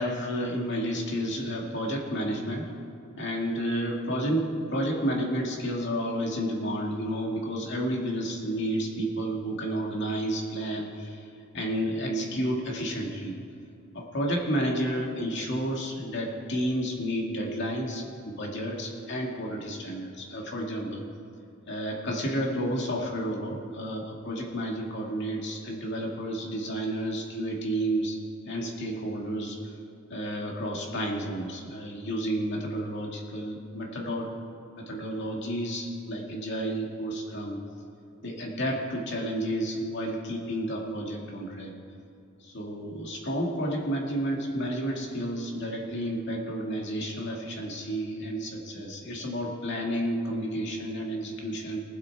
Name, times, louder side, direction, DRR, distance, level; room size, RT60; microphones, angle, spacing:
voice 1, 0.0-2.7 3.2-11.2 11.5-13.3 13.9-21.0 21.7-28.2 28.5-29.6 30.1-34.3 34.8-37.6 38.2-41.7 42.4-51.8, equal, 60° left, -1 dB, 2.1 m, -31 dB
19.0 x 8.0 x 4.7 m, 2.6 s
head